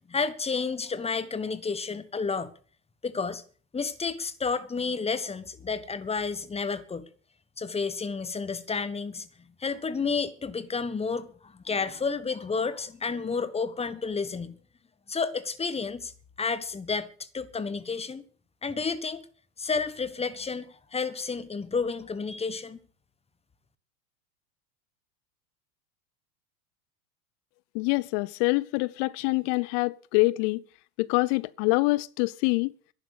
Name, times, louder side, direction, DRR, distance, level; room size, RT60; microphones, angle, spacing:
voice 1, 0.1-2.5 3.0-3.4 3.7-7.1 7.6-9.3 9.6-14.5 15.1-16.1 16.4-18.2 18.6-19.2 19.6-22.8, left 4 dB, 15° left, 1.4 m, -31 dB
voice 2, 27.7-30.6 31.0-32.7, left 24 dB, 50° left, 0.7 m, -25 dB
11.0 x 10.0 x 8.3 m
hypercardioid pair, 95°, 44 cm